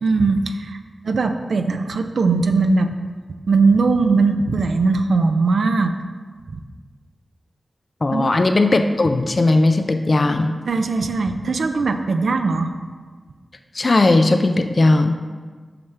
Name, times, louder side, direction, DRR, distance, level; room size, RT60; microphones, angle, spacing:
voice 1, 0.0-0.8 1.0-2.9 3.5-5.9 6.5-6.6 8.1-8.3 10.7-12.7, right 3 dB, 80° right, 6 dB, 0.4 m, -19 dB
voice 2, 8.0-10.5 13.7-15.1, left 2 dB, 50° left, 7 dB, 0.4 m, -17 dB
7.7 x 5.7 x 3.3 m, 1.5 s
cardioid pair, 50°, 0 cm